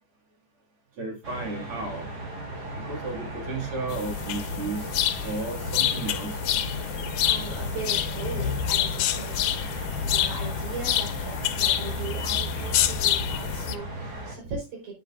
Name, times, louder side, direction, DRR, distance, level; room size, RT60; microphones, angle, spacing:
voice 1, 1.0-2.1 2.8-4.9 5.2-6.4, right 3 dB, 50° right, 2 dB, 2.8 m, -33 dB
sound 1, 1.2-14.3, right 1 dB, 35° right, 3.0 m, -36 dB
sound 2, 3.9-13.8, left 10 dB, 90° left, 2.3 m, -27 dB
voice 2, 6.8-14.9, right 4 dB, 75° right, -1 dB, 5.6 m, -39 dB
9.5 x 9.4 x 2.4 m, 0.28 s
omnidirectional pair, 3.5 m